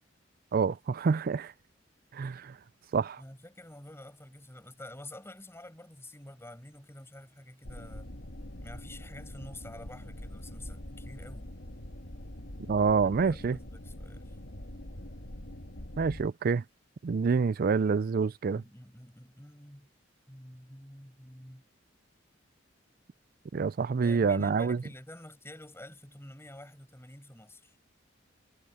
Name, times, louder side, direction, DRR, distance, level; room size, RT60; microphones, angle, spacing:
voice 1, 0.5-1.5 2.1-2.6 2.9-3.2 12.7-13.6 16.0-16.6 17.0-18.6 23.5-24.8, right 5 dB, 50° right, 0.4 m, -27 dB
voice 2, 3.2-8.1 8.6-11.5 13.0-14.4 18.5-19.9 20.3-21.6 24.0-27.8, left 1 dB, 15° left, 6.8 m, -48 dB
sound 1, 7.6-16.3, left 1 dB, 65° left, 2.3 m, -44 dB
head